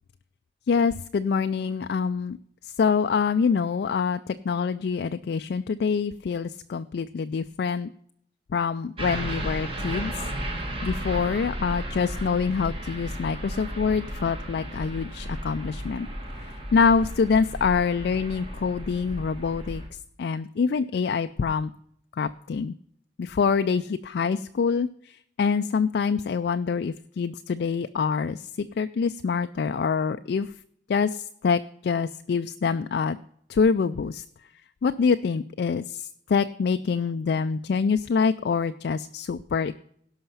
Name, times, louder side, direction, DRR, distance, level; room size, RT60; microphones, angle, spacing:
voice 1, 0.7-2.4 2.8-7.9 8.5-10.1 10.8-16.1 16.4-19.8 20.2-21.7 22.2-22.7 23.2-30.5 30.9-33.2 33.5-34.2 34.8-39.8, left 5 dB, 60° left, 10 dB, 0.3 m, -25 dB
sound 1, 9.0-19.9, right 1 dB, 30° right, 1.9 m, -34 dB
17.0 x 5.7 x 5.6 m, 0.67 s
head